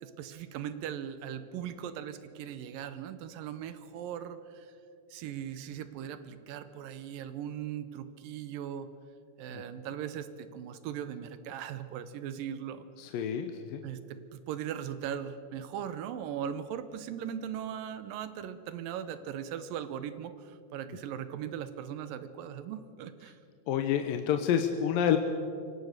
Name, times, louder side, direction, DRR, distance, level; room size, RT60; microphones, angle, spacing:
voice 1, 0.0-4.7 5.1-8.9 9.4-12.9 13.8-23.4, right 9 dB, 75° right, 12 dB, 2.4 m, -39 dB
voice 2, 13.0-13.8 23.7-25.2, left 9 dB, 75° left, 6 dB, 2.4 m, -28 dB
24.5 x 18.0 x 6.6 m, 2.5 s
omnidirectional pair, 4.3 m